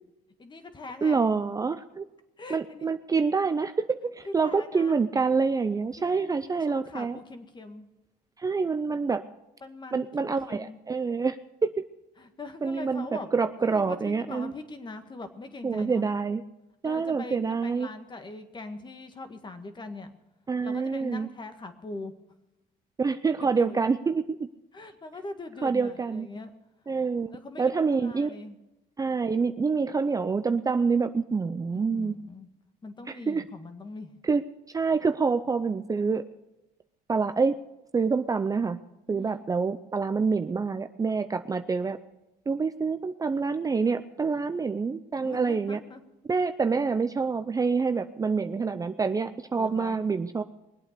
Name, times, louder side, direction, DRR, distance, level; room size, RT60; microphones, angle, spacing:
voice 1, 0.4-1.2 2.4-2.9 4.3-5.0 6.0-7.9 9.6-10.8 12.2-13.3 13.6-16.1 16.8-20.1 20.6-22.1 23.4-23.8 24.7-26.6 27.3-28.6 31.7-32.5 32.8-34.2 39.1-39.5 45.2-46.0 49.6-50.0, left 3 dB, 25° left, 8 dB, 1.8 m, -42 dB
voice 2, 1.0-2.0 2.5-7.2 8.4-9.2 9.9-11.4 11.6-11.7 12.6-13.1 13.3-14.5 15.6-16.4 16.8-17.9 20.5-21.3 23.0-24.2 25.6-26.3 26.9-28.3 29.0-32.1 33.1-33.4 34.2-34.4 34.7-36.2 37.1-37.6 37.9-38.8 39.1-42.0 42.5-45.8 46.3-50.4, right 4 dB, 20° right, 10 dB, 0.6 m, -26 dB
21.5 x 8.5 x 6.7 m, 0.97 s
cardioid pair, 110°, 17 cm